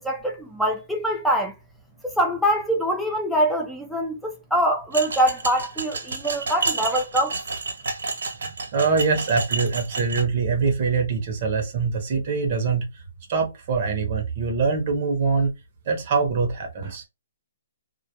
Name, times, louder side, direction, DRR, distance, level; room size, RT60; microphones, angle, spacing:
voice 1, 0.0-1.5 2.0-7.4, right 1 dB, ahead, 0.4 m, -24 dB
sound 1, 4.9-10.2, right 3 dB, 80° right, 0.9 m, -30 dB
voice 2, 8.4-13.0 13.3-15.5 15.9-17.0, right 5 dB, 35° right, 0.7 m, -24 dB
2.2 x 2.1 x 2.8 m
hypercardioid pair, 165°, 0 cm